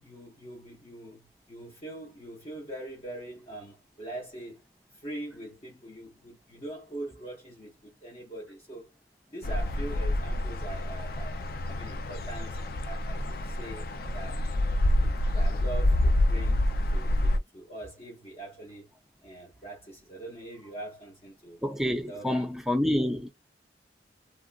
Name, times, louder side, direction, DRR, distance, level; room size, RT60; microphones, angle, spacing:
voice 1, 0.0-4.6 4.9-8.9 9.3-11.4 11.7-12.6 12.8-13.9 14.1-14.5 15.0-18.9 19.2-21.6 21.9-22.4, right 1 dB, 35° left, 0.9 m, -43 dB
sound 1, 9.4-17.4, left 1 dB, 55° left, 0.4 m, -27 dB
voice 2, 21.6-23.3, left 1 dB, 5° right, 0.5 m, -28 dB
3.1 x 2.4 x 2.2 m
head